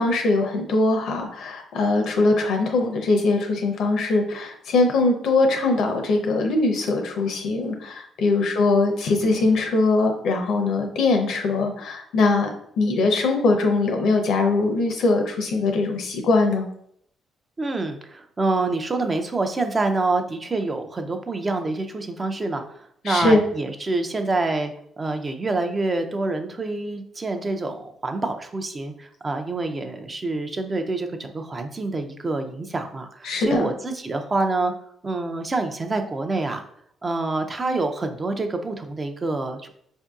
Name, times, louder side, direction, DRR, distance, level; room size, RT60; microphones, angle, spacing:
voice 1, 0.0-12.5 12.8-16.6 23.1-23.4 33.2-33.7, left 3 dB, 75° left, 3 dB, 0.6 m, -21 dB
voice 2, 17.6-34.7 35.0-36.6 37.0-39.7, right 2 dB, 30° right, 6 dB, 0.4 m, -27 dB
4.4 x 2.6 x 2.3 m, 0.68 s
cardioid pair, 90°, 0 cm